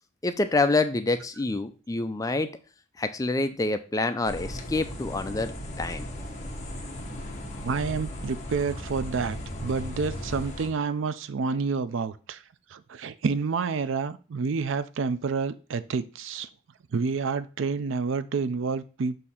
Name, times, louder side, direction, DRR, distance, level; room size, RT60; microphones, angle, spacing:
voice 1, 0.2-2.5 3.0-5.5 5.8-6.1, left 2 dB, 15° left, 0.4 m, -27 dB
sound 1, 4.2-10.7, left 1 dB, 35° left, 1.2 m, -36 dB
voice 2, 7.6-12.4 12.7-16.5 16.9-19.2, right 5 dB, 70° right, 0.4 m, -29 dB
6.4 x 2.8 x 5.5 m
head